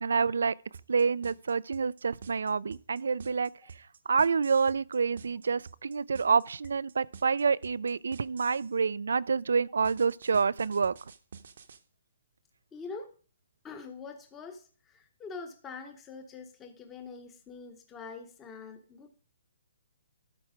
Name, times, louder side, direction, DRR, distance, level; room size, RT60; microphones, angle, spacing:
voice 1, 0.0-0.6 0.9-3.5 4.1-10.9, right 5 dB, 85° right, 0.4 m, -27 dB
sound 1, 0.7-8.7 9.8-11.8, right 6 dB, 55° right, 0.8 m, -49 dB
voice 2, 12.7-13.1 13.6-19.1, left 4 dB, 10° left, 0.8 m, -44 dB
13.0 x 4.6 x 5.0 m
hypercardioid pair, 175°, 0 cm